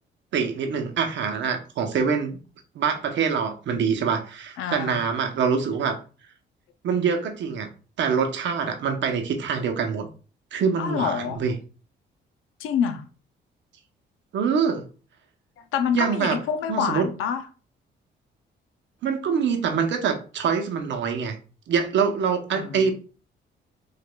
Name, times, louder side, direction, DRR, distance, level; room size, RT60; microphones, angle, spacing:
voice 1, 0.3-2.4 2.7-5.9 6.8-7.7 8.0-10.1 10.5-11.5 14.3-14.8 15.9-16.4 16.7-17.1 19.0-21.4 21.7-22.9, right 6 dB, 65° right, 5 dB, 0.8 m, -25 dB
voice 2, 4.6-5.0 10.8-11.4 12.6-13.0 15.7-17.4 22.5-22.9, left 7 dB, 85° left, 9 dB, 0.5 m, -27 dB
4.9 x 2.4 x 2.2 m, 0.37 s
cardioid pair, 90°, 20 cm